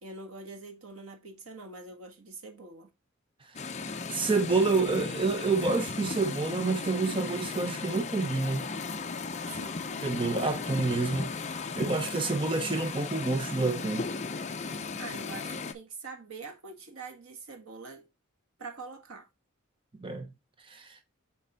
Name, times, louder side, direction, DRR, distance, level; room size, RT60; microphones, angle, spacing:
voice 1, 0.0-2.9 9.5-10.0 15.0-18.1 18.6-19.3, right 3 dB, 90° right, 1.6 m, -44 dB
sound 1, 3.5-15.7, left 4 dB, 35° left, 0.6 m, -36 dB
voice 2, 4.1-8.7 10.0-14.1 20.0-20.3 20.7-21.0, right 3 dB, 25° right, 0.8 m, -28 dB
6.5 x 4.3 x 4.0 m
head